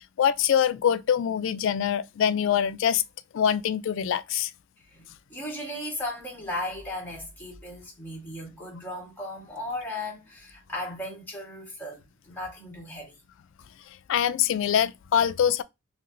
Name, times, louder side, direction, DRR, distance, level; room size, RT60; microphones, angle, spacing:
voice 1, 0.2-3.0 3.3-4.5 14.1-15.6, left 9 dB, 65° left, 0.3 m, -24 dB
voice 2, 4.9-12.0 12.3-13.2, left 1 dB, 10° left, 1.3 m, -36 dB
3.0 x 2.8 x 2.5 m
head